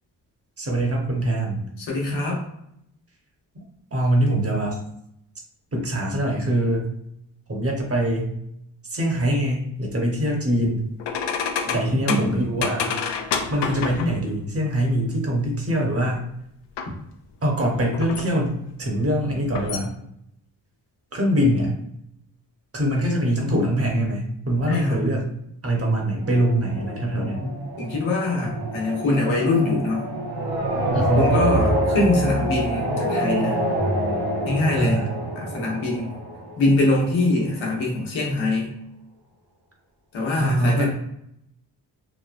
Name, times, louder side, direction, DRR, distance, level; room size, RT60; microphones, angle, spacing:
voice 1, 0.6-1.6 3.9-4.8 5.7-6.9 7.5-8.4 8.9-10.8 11.7-13.0 13.5-16.3 17.4-19.9 21.1-21.7 22.7-25.3 25.6-27.5 28.6-28.7 30.9-31.3 34.8-35.1 40.4-40.9, right 1 dB, 30° right, 0 dB, 1.1 m, -23 dB
voice 2, 1.8-2.4 11.7-12.4 24.7-25.0 27.1-30.1 31.2-33.6 34.4-35.0 35.4-36.1 36.6-38.7 40.1-40.9, left 2 dB, 80° left, -2 dB, 1.1 m, -23 dB
sound 1, 11.0-14.3 16.8-16.9 17.5-18.4 19.4-19.9, left 6 dB, 65° left, 0.5 m, -28 dB
sound 2, 26.2-37.1, right 1 dB, 55° right, 1.0 m, -26 dB
3.4 x 2.1 x 2.5 m, 0.77 s
supercardioid pair, 45°, 46 cm